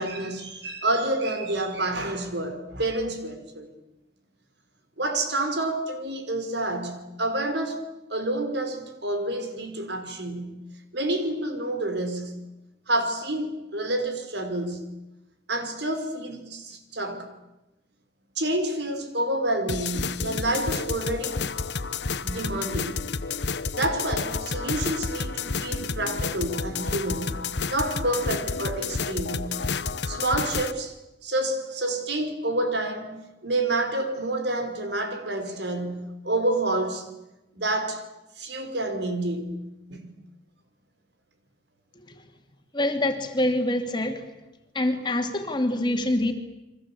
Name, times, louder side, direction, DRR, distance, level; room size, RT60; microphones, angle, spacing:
voice 1, 0.0-3.7 5.0-7.8 8.1-10.6 10.9-12.4 12.9-14.9 15.5-17.3 18.4-21.5 22.2-23.1 23.7-27.3 27.7-29.6 30.1-30.9 31.2-37.1 37.5-38.0 38.4-39.6 39.9-40.1, right 1 dB, 70° right, 7 dB, 4.8 m, -28 dB
sound 1, 19.7-30.7, left 4 dB, 70° left, 1.0 m, -30 dB
voice 2, 42.7-44.2 44.7-46.3, left 1 dB, 25° left, 5 dB, 2.7 m, -25 dB
29.5 x 23.5 x 8.5 m, 0.95 s
head